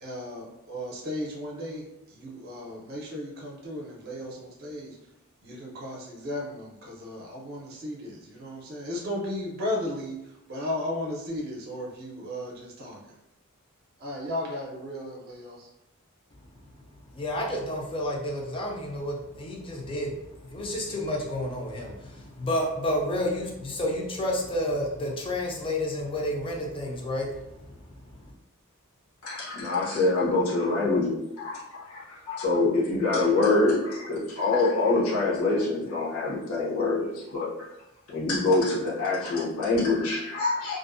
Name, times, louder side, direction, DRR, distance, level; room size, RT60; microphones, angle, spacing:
voice 1, 0.0-5.0 5.4-13.1 14.0-15.7, left 1 dB, 45° right, -3 dB, 0.6 m, -35 dB
voice 2, 17.1-28.3, left 1 dB, 25° left, -1 dB, 0.5 m, -30 dB
voice 3, 29.2-37.5 38.1-40.8, left 3 dB, 75° left, -6 dB, 0.8 m, -25 dB
2.5 x 2.0 x 2.5 m, 0.87 s
head